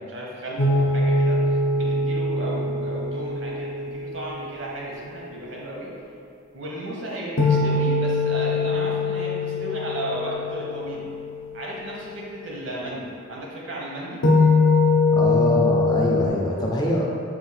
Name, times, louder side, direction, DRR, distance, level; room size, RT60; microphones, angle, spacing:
voice 1, 0.0-5.9 6.5-11.1 11.5-14.2, right 1 dB, 70° right, -4 dB, 0.9 m, -34 dB
sound 1, 0.6-4.7 7.4-11.6 14.2-16.3, left 3 dB, 75° left, 0.6 m, -22 dB
voice 2, 15.1-17.1, left 1 dB, 20° left, -3 dB, 0.4 m, -24 dB
4.3 x 2.4 x 4.1 m, 2.4 s
head